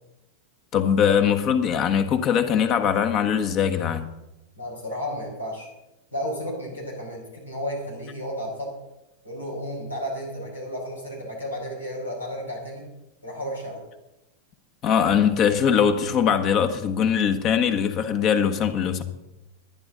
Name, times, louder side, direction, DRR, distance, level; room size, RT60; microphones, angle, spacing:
voice 1, 0.7-4.1 14.8-19.0, left 8 dB, 35° left, 1.3 m, -21 dB
voice 2, 4.6-5.7 6.1-8.7 9.2-12.9 13.2-13.8, equal, 85° left, 5.2 m, -32 dB
22.0 x 10.0 x 3.9 m
figure-of-eight pair, 90°, 0 cm